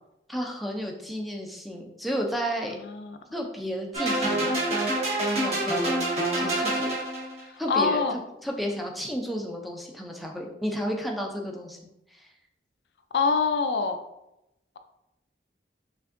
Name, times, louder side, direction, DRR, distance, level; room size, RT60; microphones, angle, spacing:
voice 1, 0.3-2.8 3.3-4.6 5.3-5.9 6.4-6.9 7.6-11.8, equal, ahead, 1 dB, 0.4 m, -32 dB
voice 2, 2.7-3.2 7.7-8.2 13.1-14.0, left 5 dB, 70° left, 7 dB, 0.4 m, -25 dB
sound 1, 3.9-7.4, right 1 dB, 35° right, 1.3 m, -26 dB
5.7 x 2.6 x 2.5 m, 0.86 s
head